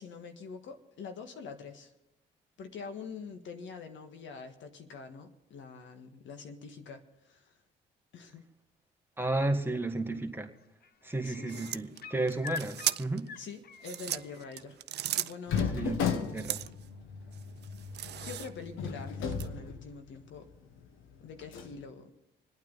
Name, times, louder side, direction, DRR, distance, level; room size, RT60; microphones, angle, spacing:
voice 1, 0.0-1.9 2.6-7.5 8.1-8.4 11.2-11.7 13.4-14.8 15.1-15.7 18.2-20.5 21.2-22.1, left 5 dB, 70° left, 6 dB, 1.5 m, -45 dB
voice 2, 9.2-10.5 11.0-13.3 15.7-16.6, right 2 dB, 10° right, 4 dB, 1.7 m, -33 dB
sound 1, 9.9-10.3 10.6-14.6 16.3-16.4, left 6 dB, 50° left, 0.8 m, -45 dB
sound 2, 11.5-13.3 13.7-15.6 16.3-16.9 17.3-18.7 19.3-19.5, right 12 dB, 60° right, 0.5 m, -36 dB
sound 3, 15.5-20.4 20.7-20.8 21.4-21.8, left 6 dB, 90° left, 1.3 m, -35 dB
26.5 x 9.1 x 4.0 m, 0.94 s
cardioid pair, 90°, 20 cm